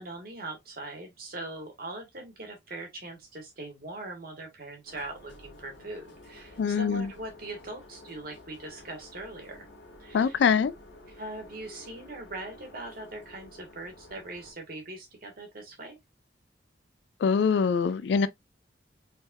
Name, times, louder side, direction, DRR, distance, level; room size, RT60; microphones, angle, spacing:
voice 1, 0.0-9.7 10.0-10.4 11.1-16.0, right 2 dB, 50° right, 1.5 m, -41 dB
sound 1, 4.9-14.5, left 1 dB, 85° left, 1.8 m, -51 dB
voice 2, 6.6-7.1 10.1-10.7 17.2-18.3, left 6 dB, 65° left, 0.3 m, -24 dB
4.2 x 3.4 x 2.4 m
head